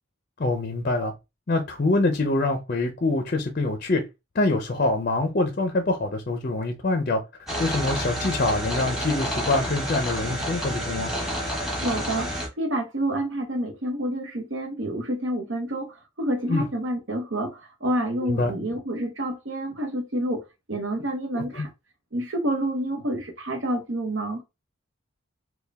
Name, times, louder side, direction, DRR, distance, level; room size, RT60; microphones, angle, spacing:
voice 1, 0.4-1.1 1.5-4.0 4.3-7.2 7.6-11.1 16.5-16.7 18.2-18.5 21.3-21.7, left 2 dB, 40° left, 0.5 m, -25 dB
sound 1, 7.5-12.5, equal, ahead, 1.2 m, -29 dB
voice 2, 11.8-21.7 22.1-24.4, right 1 dB, 65° right, 1.0 m, -28 dB
4.4 x 2.3 x 3.4 m
head